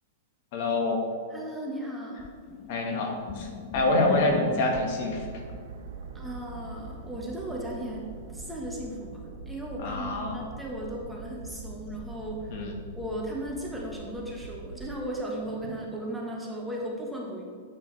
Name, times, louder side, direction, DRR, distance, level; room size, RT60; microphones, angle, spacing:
voice 1, 0.5-1.0 2.7-3.5 3.7-5.2 9.8-10.4 12.5-12.7, left 2 dB, 55° left, 2 dB, 1.5 m, -26 dB
voice 2, 1.3-2.3 6.1-12.6 12.9-17.4, right 1 dB, 5° right, -3 dB, 1.3 m, -36 dB
sound 1, 2.2-5.1 8.0-8.1, left 6 dB, 30° left, 0.6 m, -37 dB
sound 2, 5.1-15.0, right 3 dB, 75° right, 1.2 m, -43 dB
9.1 x 8.6 x 3.3 m, 2.1 s
hypercardioid pair, 145°, 0 cm